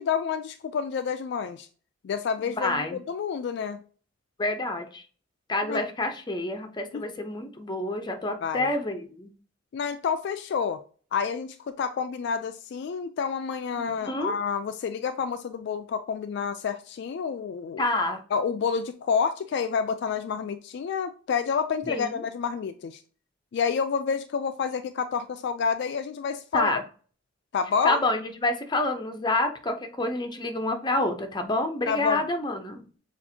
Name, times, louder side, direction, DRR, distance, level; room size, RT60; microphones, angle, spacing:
voice 1, 0.0-1.7 2.0-3.8 5.7-5.8 6.9-7.1 8.4-8.7 9.7-10.8 11.1-17.8 18.3-23.0 23.5-26.7 27.5-28.0 31.9-32.2, left 6 dB, 60° left, 0.3 m, -29 dB
voice 2, 2.4-3.0 4.4-5.0 5.5-9.3 13.7-14.3 17.8-18.2 21.9-22.2 26.5-26.8 27.8-32.8, left 2 dB, 20° left, 0.6 m, -28 dB
6.9 x 2.5 x 2.7 m
head